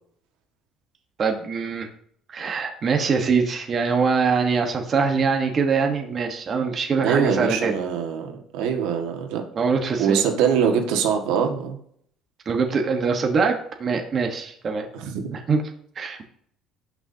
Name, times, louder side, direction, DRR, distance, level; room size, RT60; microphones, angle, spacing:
voice 1, 1.2-1.9 2.3-7.7 9.5-10.2 12.4-14.9 15.3-15.6 16.0-16.3, right 5 dB, 30° right, 3 dB, 1.3 m, -23 dB
voice 2, 7.0-9.4 10.0-11.8 14.9-15.3, right 7 dB, 85° right, 3 dB, 1.8 m, -23 dB
18.0 x 6.1 x 2.9 m, 0.65 s
cardioid pair, 160°, 0 cm